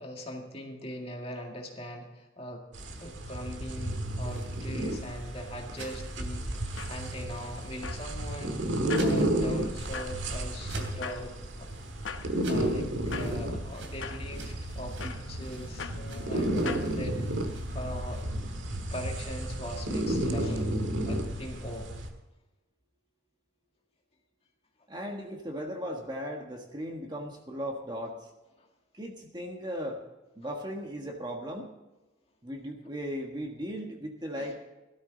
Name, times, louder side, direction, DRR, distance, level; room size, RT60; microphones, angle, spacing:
voice 1, 0.0-2.6 3.0-11.7 12.2-18.2 18.8-20.7 21.1-21.9 28.6-28.7 34.4-34.5, equal, 30° left, 1 dB, 2.0 m, -41 dB
sound 1, 2.7-22.1, right 1 dB, 75° right, 1.7 m, -32 dB
sound 2, 4.0-18.2, right 2 dB, 90° right, 3.0 m, -49 dB
sound 3, 6.5-16.9, left 5 dB, 75° left, 0.9 m, -44 dB
voice 2, 24.9-28.3 28.9-30.0 30.3-31.7 32.4-34.6, equal, 20° right, 1 dB, 1.5 m, -37 dB
17.5 x 12.5 x 4.0 m, 1.0 s
head